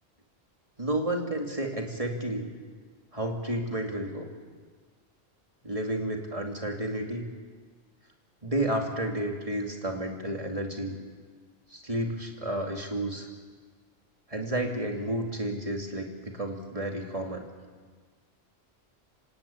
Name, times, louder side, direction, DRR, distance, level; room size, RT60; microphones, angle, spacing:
voice 1, 0.8-2.5 3.1-4.3 5.6-7.3 8.4-11.0 11.7-13.3 14.3-17.5, right 1 dB, 30° right, 2 dB, 2.8 m, -31 dB
26.0 x 18.5 x 8.8 m, 1.5 s
omnidirectional pair, 1.1 m